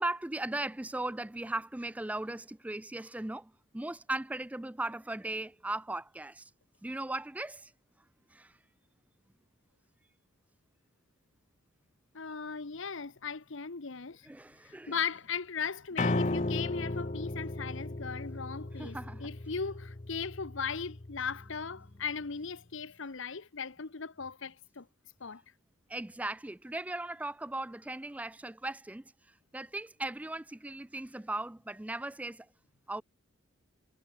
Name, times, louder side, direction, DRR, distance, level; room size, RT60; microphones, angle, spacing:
voice 1, 0.0-6.5 6.8-7.7 8.3-8.6 14.3-15.0 18.8-19.3 25.9-32.5 32.9-33.0, right 2 dB, 5° right, 0.3 m, -38 dB
voice 2, 12.1-14.3 14.6-24.9 25.2-25.4, left 6 dB, 65° left, 1.0 m, -38 dB
Piano, 16.0-22.1, left 2 dB, 35° left, 0.8 m, -35 dB
head